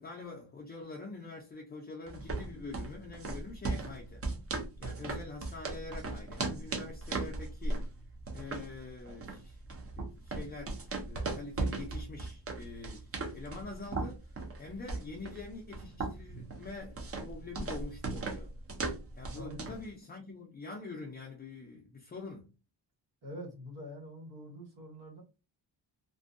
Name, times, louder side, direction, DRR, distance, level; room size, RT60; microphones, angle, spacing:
voice 1, 0.0-4.2 4.8-7.9 8.3-14.3 14.6-18.6 19.1-22.5, left 3 dB, 25° left, 0.4 m, -45 dB
sound 1, 2.1-19.9, right 3 dB, 35° right, 0.5 m, -38 dB
voice 2, 19.3-19.8 23.2-25.2, equal, 90° right, 1.5 m, -45 dB
2.6 x 2.2 x 2.4 m
wide cardioid pair, 140°, 44 cm